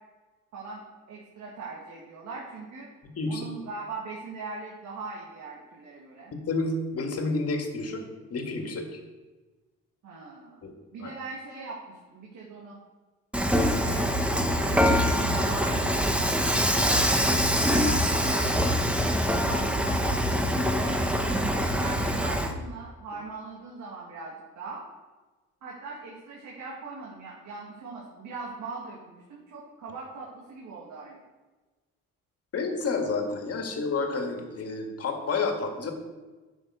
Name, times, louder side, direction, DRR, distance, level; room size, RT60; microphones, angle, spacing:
voice 1, 0.5-2.9 3.3-6.3 10.0-10.6 10.9-12.8 13.5-14.1 14.5-16.0 16.7-17.4 17.6-24.8 25.6-31.2, right 3 dB, 70° right, -4 dB, 2.3 m, -40 dB
voice 2, 3.2-3.5 6.4-8.0 8.3-9.0 10.6-10.7 11.0-11.1 32.5-35.9, left 3 dB, 50° left, 3 dB, 1.9 m, -30 dB
Dishes pots and pans / Frying (food), 13.3-22.5, equal, 5° right, 1.1 m, -24 dB
10.5 x 6.6 x 4.8 m, 1.2 s
cardioid pair, 90°, 30 cm